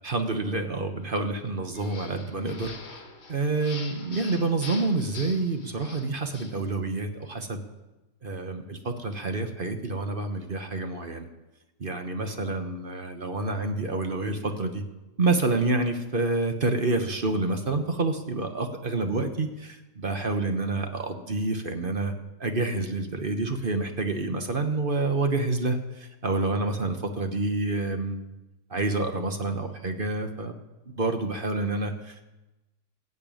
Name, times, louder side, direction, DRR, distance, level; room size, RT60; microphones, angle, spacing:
voice 1, 0.0-2.7 3.3-7.6 8.2-11.3 11.8-14.8 15.2-22.1 22.4-28.2 28.7-30.5 30.9-32.1, right 3 dB, 35° right, 6 dB, 1.0 m, -28 dB
sound 1, 1.7-6.6, left 3 dB, 40° left, 1.7 m, -44 dB
16.0 x 6.8 x 9.0 m, 1.0 s
omnidirectional pair, 1.9 m